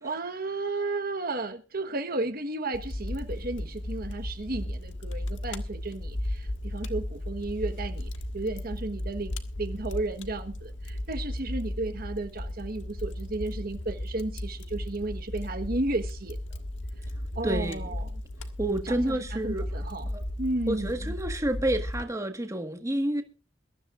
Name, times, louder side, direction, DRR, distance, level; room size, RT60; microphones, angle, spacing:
voice 1, 0.0-16.4 17.3-18.2 18.8-20.1 20.4-20.9, right 2 dB, 50° right, 1.3 m, -33 dB
Fire, 2.7-22.0, left 1 dB, 75° left, 1.6 m, -35 dB
voice 2, 17.4-18.0 18.6-19.6 20.1-20.2 20.7-23.2, right 1 dB, 15° right, 1.6 m, -29 dB
22.5 x 13.5 x 2.5 m
head